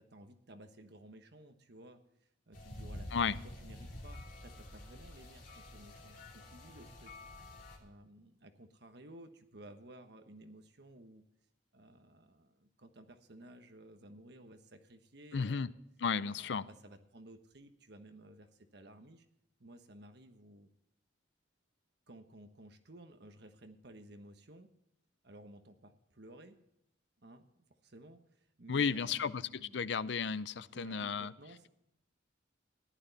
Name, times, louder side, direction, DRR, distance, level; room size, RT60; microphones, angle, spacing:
voice 1, 0.0-2.0 2.5-3.3 3.6-7.1 7.8-11.2 11.7-15.7 16.3-19.3 19.6-20.7 22.1-24.7 25.2-26.6 27.2-29.9 30.5-31.7, right 1 dB, 60° right, 7 dB, 1.2 m, -55 dB
sound 1, 2.5-7.8, left 1 dB, 45° left, 3.1 m, -48 dB
voice 2, 15.3-15.7 16.0-16.6 28.7-31.3, left 6 dB, 65° left, 16 dB, 0.5 m, -33 dB
14.5 x 11.5 x 4.1 m, 0.81 s
head